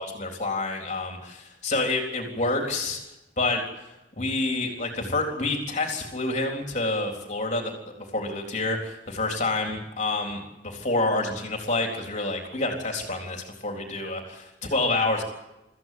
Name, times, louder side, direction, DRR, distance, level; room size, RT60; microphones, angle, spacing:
voice 1, 0.0-3.0 3.4-3.6 4.2-7.7 8.0-15.2, left 2 dB, 40° left, 2 dB, 3.9 m, -28 dB
25.0 x 14.5 x 9.6 m, 0.98 s
head